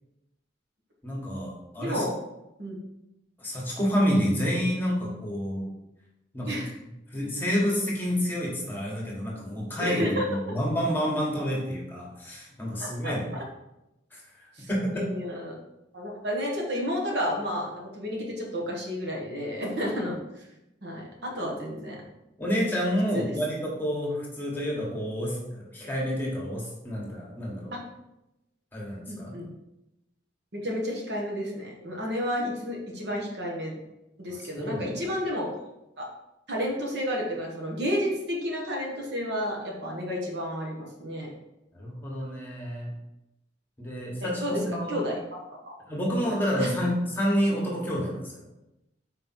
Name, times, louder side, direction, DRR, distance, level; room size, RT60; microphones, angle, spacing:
voice 1, 1.0-2.0 3.4-5.6 6.3-6.5 7.1-13.3 14.1-15.1 22.4-27.8 28.7-29.3 34.3-34.9 41.7-42.9 43.8-45.0 45.9-48.4, equal, 10° left, -3 dB, 1.5 m, -29 dB
voice 2, 1.8-2.2 2.6-2.8 6.5-6.7 9.8-10.5 12.8-13.1 14.6-14.7 14.9-15.6 15.9-20.1 20.8-22.0 23.1-23.2 27.7-27.8 29.1-29.5 30.5-33.7 34.2-35.5 36.0-36.1 36.5-41.3 44.2-45.2 45.5-45.7 46.6-46.7, equal, 65° right, -1 dB, 1.4 m, -31 dB
5.4 x 4.3 x 4.3 m, 0.92 s
head